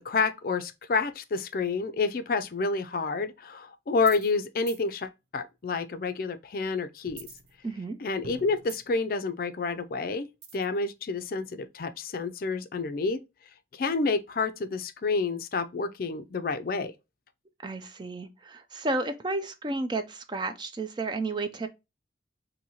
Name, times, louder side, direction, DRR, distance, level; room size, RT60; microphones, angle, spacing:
voice 1, 0.0-7.3 8.0-10.3 10.5-13.2 13.7-16.9, left 4 dB, 50° left, 0.4 m, -29 dB
sound 1, 4.0-4.4 4.7-4.8 7.1-7.9 8.2-9.1 10.4-10.8, right 5 dB, 60° right, 0.7 m, -46 dB
voice 2, 7.6-8.0 17.6-21.7, right 2 dB, 25° right, 0.4 m, -32 dB
4.1 x 2.7 x 2.8 m
head